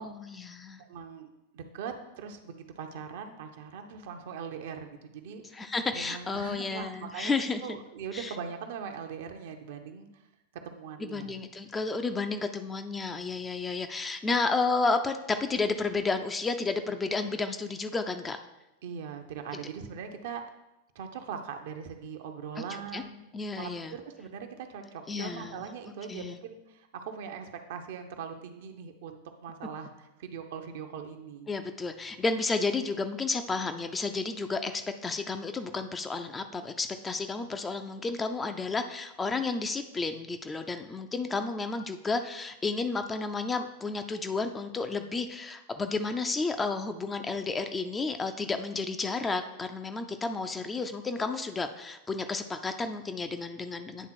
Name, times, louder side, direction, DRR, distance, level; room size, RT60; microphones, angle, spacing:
voice 1, 0.0-0.8 5.5-7.6 8.1-8.3 11.0-18.4 22.6-22.7 22.9-23.0 23.3-24.0 25.1-26.4 31.5-54.1, left 3 dB, 15° left, 7 dB, 0.4 m, -32 dB
voice 2, 0.8-7.3 7.6-10.2 10.6-11.4 18.8-20.4 20.9-31.5, right 6 dB, 55° right, 6 dB, 0.7 m, -41 dB
9.2 x 3.6 x 4.4 m, 0.95 s
figure-of-eight pair, 90°, 0 cm